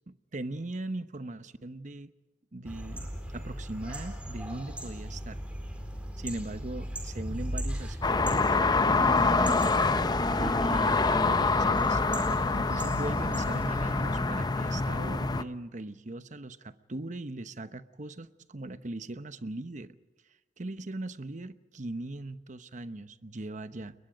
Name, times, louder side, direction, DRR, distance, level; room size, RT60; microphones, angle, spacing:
voice 1, 0.1-2.1 2.5-5.4 6.2-9.6 10.3-20.0 20.6-23.9, right 2 dB, 45° right, 12 dB, 0.9 m, -39 dB
sound 1, 2.6-14.2, equal, 5° right, 4.3 m, -38 dB
sound 2, 8.0-15.4, left 3 dB, 25° left, 0.7 m, -26 dB
29.5 x 22.5 x 5.2 m, 1.1 s
head